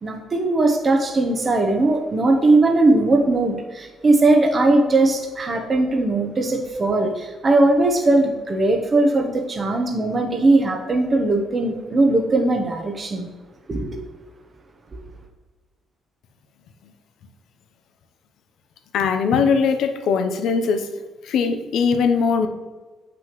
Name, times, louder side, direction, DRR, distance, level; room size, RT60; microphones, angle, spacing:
voice 1, 0.0-13.3 13.7-14.0, right 2 dB, 35° right, 2 dB, 0.9 m, -19 dB
voice 2, 18.9-20.9 21.2-22.5, left 5 dB, 80° left, 7 dB, 0.7 m, -20 dB
7.6 x 6.1 x 3.1 m, 1.3 s
cardioid pair, 90°, 0 cm